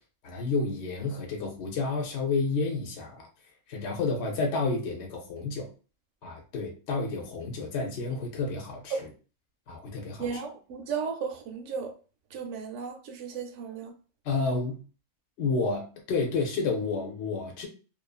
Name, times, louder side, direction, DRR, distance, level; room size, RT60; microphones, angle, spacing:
voice 1, 0.2-3.3 3.7-5.7 6.2-9.1 9.7-10.4 14.2-14.8 15.4-17.7, left 3 dB, 65° left, 0.9 m, -30 dB
voice 2, 10.2-11.9 12.3-13.9, right 5 dB, 75° right, 0.9 m, -34 dB
2.6 x 2.4 x 2.3 m
omnidirectional pair, 1.3 m